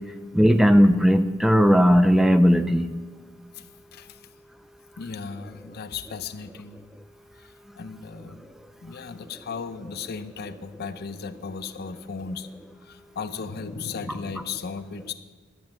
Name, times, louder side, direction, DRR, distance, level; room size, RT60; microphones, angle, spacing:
voice 1, 0.3-2.9, equal, ahead, 10 dB, 0.3 m, -17 dB
voice 2, 3.5-4.3 5.0-6.9 7.4-8.4 8.8-12.5 12.8-15.1, left 5 dB, 50° left, 11 dB, 0.5 m, -36 dB
10.5 x 6.9 x 7.5 m, 1.4 s
head